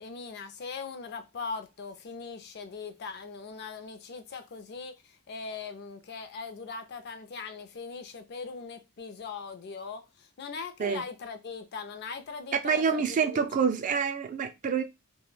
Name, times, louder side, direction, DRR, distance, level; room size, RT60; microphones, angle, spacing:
voice 1, 0.0-13.4, left 5 dB, 50° left, 0.4 m, -40 dB
voice 2, 12.6-14.8, right 6 dB, 35° right, 0.3 m, -27 dB
2.2 x 2.1 x 3.1 m
head